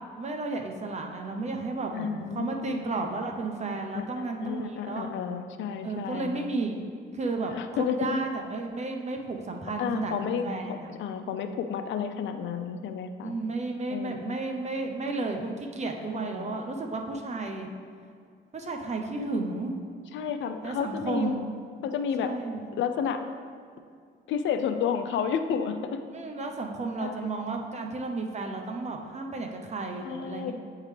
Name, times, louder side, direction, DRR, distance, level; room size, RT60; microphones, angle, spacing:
voice 1, 0.2-5.1 5.8-6.8 7.1-10.9 13.2-17.7 18.5-19.7 20.6-21.5 22.2-22.7 26.1-30.5, right 3 dB, 35° right, 3 dB, 0.7 m, -33 dB
voice 2, 1.9-2.8 3.9-6.5 7.5-8.2 9.8-13.3 13.9-14.4 16.1-16.6 19.2-19.5 20.1-21.3 21.8-22.3 22.8-23.2 24.3-26.0 27.0-27.2 30.0-30.5, left 7 dB, 70° left, 8 dB, 0.5 m, -31 dB
8.8 x 3.7 x 3.2 m, 2.2 s
cardioid pair, 90°, 20 cm